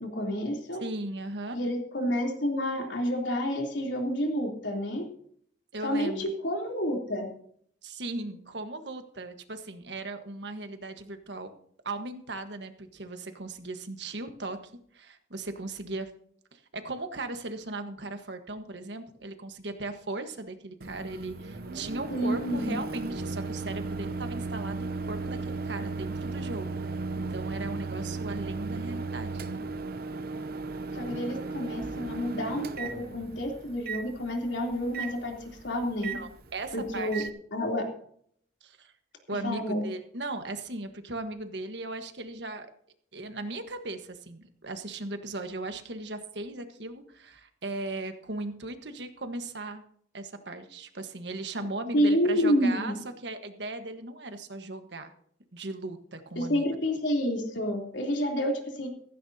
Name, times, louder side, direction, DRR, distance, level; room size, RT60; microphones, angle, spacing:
voice 1, 0.0-0.8 1.5-5.0 5.8-7.3 22.1-22.8 30.9-35.3 35.6-36.2 36.7-37.2 37.5-37.9 39.4-39.8 51.9-53.0 56.3-58.9, equal, 90° left, 1 dB, 3.3 m, -29 dB
voice 2, 0.8-1.6 5.7-6.2 7.8-11.5 11.8-16.1 16.5-26.7 27.1-29.6 31.1-31.2 36.1-37.3 38.6-38.9 39.3-42.7 43.1-49.8 50.1-52.9 53.2-55.1 55.5-56.6, right 2 dB, 70° right, 7 dB, 1.4 m, -37 dB
Microwave oven, 20.8-37.3, right 3 dB, 55° right, 0.7 m, -36 dB
15.5 x 15.0 x 2.8 m, 0.63 s
head